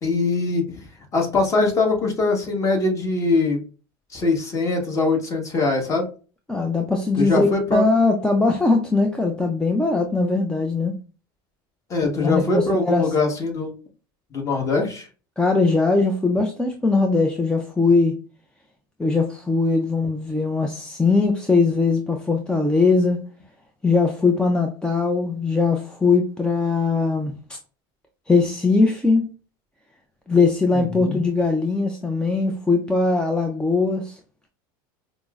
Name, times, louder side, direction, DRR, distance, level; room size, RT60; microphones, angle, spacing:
voice 1, 0.0-0.6 1.1-3.6 4.1-6.1 7.1-7.9 11.9-13.7 14.3-15.1 30.7-31.2, left 3 dB, 25° left, 1 dB, 1.2 m, -22 dB
voice 2, 6.5-11.0 12.1-13.0 15.4-18.1 19.0-23.2 23.8-27.6 28.3-29.3 30.3-34.2, left 3 dB, 5° left, 2 dB, 0.4 m, -20 dB
5.1 x 2.0 x 2.3 m, 0.36 s
supercardioid pair, 115°, 12 cm